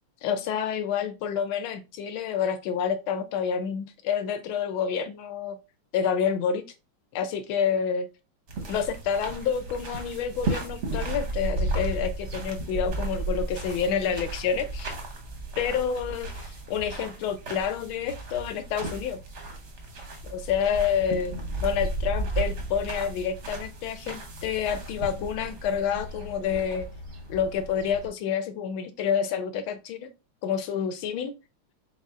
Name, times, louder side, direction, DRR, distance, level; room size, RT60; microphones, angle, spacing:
voice 1, 0.2-5.6 5.9-6.6 7.1-8.1 8.7-14.9 15.6-19.2 20.2-26.9 27.3-30.1 30.4-31.3, left 7 dB, 80° left, 10 dB, 1.3 m, -28 dB
sound 1, 8.5-28.1, right 2 dB, 55° right, 0.8 m, -34 dB
4.1 x 4.1 x 2.4 m, 0.28 s
omnidirectional pair, 2.4 m